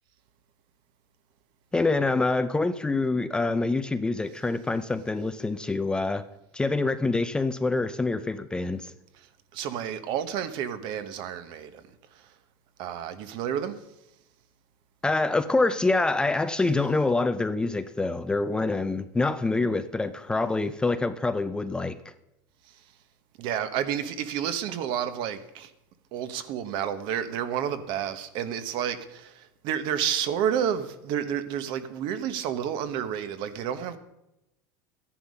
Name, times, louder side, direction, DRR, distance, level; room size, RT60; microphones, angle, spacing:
voice 1, 1.7-6.2 6.5-8.9 15.0-22.1, left 3 dB, 10° left, 0.5 m, -26 dB
voice 2, 9.5-11.8 12.8-13.8 23.4-25.7 26.1-34.0, right 9 dB, 55° right, 1.3 m, -30 dB
13.5 x 10.5 x 5.4 m
supercardioid pair, 145°, 10 cm